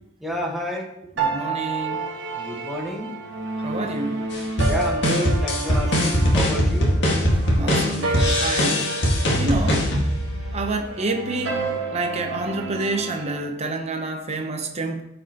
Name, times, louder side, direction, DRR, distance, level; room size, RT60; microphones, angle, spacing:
voice 1, 0.2-0.9 2.3-3.1 4.7-7.0, equal, ahead, -1 dB, 1.3 m, -30 dB
voice 2, 1.2-2.1 3.6-4.3 7.4-8.9 9.4-9.9 10.5-11.6 11.9-15.0, right 2 dB, 35° right, 3 dB, 0.9 m, -28 dB
sound 1, 1.2-13.4, right 3 dB, 70° right, 1.5 m, -30 dB
sound 2, 4.3-10.8, equal, 60° left, 1.9 m, -21 dB
13.5 x 5.5 x 3.0 m, 0.80 s
head